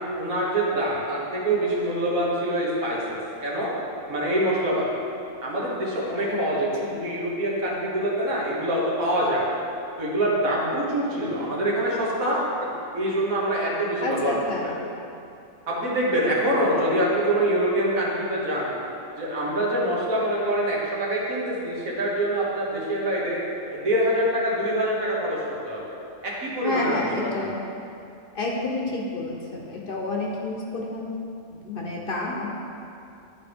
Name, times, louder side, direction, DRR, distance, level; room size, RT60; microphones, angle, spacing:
voice 1, 0.0-3.7 4.1-5.0 5.4-9.6 10.0-14.3 14.6-14.7 15.7-18.7 19.2-23.4 23.7-25.4 25.7-25.8 26.2-27.3, right 1 dB, 90° right, -5 dB, 1.8 m, -25 dB
voice 2, 6.3-7.0 11.6-11.7 14.0-14.8 16.1-16.3 26.6-27.6 28.3-31.1 31.5-32.5, left 2 dB, 50° left, -1 dB, 0.8 m, -30 dB
10.5 x 4.4 x 3.4 m, 2.7 s
omnidirectional pair, 1.4 m